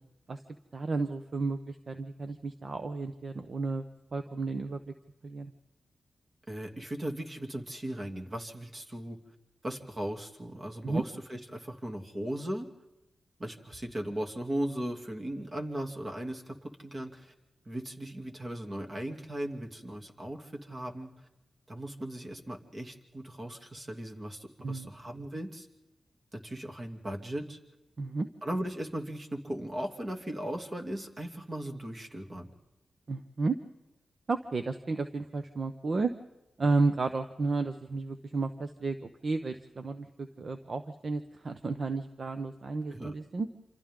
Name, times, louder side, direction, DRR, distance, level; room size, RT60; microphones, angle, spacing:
voice 1, 0.7-3.8 4.1-4.9 5.2-5.5 10.8-11.0 24.6-24.9 28.0-28.3 33.1-33.6 34.3-36.1 36.6-43.5, right 3 dB, 50° right, 8 dB, 0.9 m, -32 dB
voice 2, 6.5-9.2 9.6-12.7 13.4-17.3 17.7-21.1 21.7-25.7 26.3-27.6 28.4-32.5 42.9-43.1, right 1 dB, 35° right, 3 dB, 2.7 m, -37 dB
27.5 x 26.5 x 3.8 m, 0.96 s
cardioid pair, 75°, 0 cm